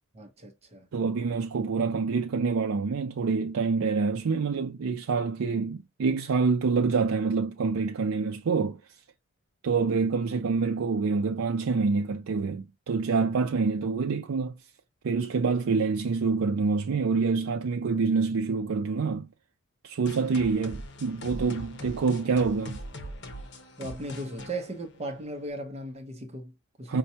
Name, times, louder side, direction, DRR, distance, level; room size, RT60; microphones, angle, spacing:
voice 1, 0.1-0.9 23.8-27.0, right 1 dB, 30° right, 0.7 m, -37 dB
voice 2, 0.9-8.8 9.6-14.5 15.0-19.3 19.8-22.8 26.9-27.0, right 4 dB, 80° right, 0.4 m, -26 dB
sound 1, 20.1-25.5, equal, 60° left, 1.0 m, -41 dB
5.3 x 2.3 x 2.7 m
head